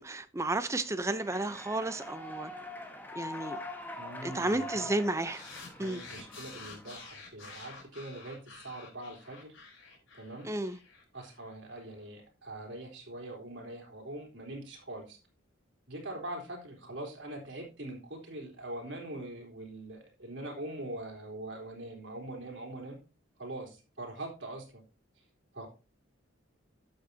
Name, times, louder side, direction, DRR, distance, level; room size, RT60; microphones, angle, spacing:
voice 1, 0.0-2.5 3.1-3.6 4.2-5.4 5.8-6.0 10.4-10.8, right 2 dB, 15° right, 0.6 m, -32 dB
Human voice / Clapping / Cheering, 1.0-7.0, left 2 dB, 10° left, 1.3 m, -44 dB
voice 2, 4.0-4.9 5.8-9.5 10.2-10.5 11.1-15.2 15.9-23.0 23.4-24.8 25.5-25.7, right 1 dB, 65° right, 3.8 m, -43 dB
sound 1, 5.3-11.8, left 4 dB, 80° left, 4.0 m, -50 dB
12.0 x 7.8 x 2.8 m
head